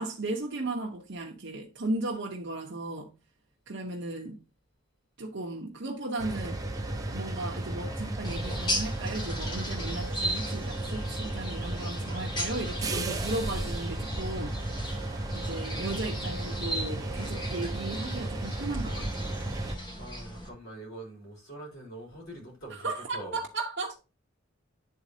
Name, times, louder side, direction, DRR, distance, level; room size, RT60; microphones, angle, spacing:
voice 1, 0.0-3.1 3.7-4.4 5.2-6.6 7.1-14.6 15.3-19.3 22.8-24.0, right 2 dB, 60° right, 0.9 m, -35 dB
sound 1, 6.2-19.8, right 2 dB, 15° right, 0.8 m, -34 dB
sound 2, 8.2-20.5, equal, 20° left, 1.5 m, -37 dB
voice 2, 19.9-23.4, right 1 dB, 85° left, 4.2 m, -44 dB
10.0 x 4.1 x 2.7 m
head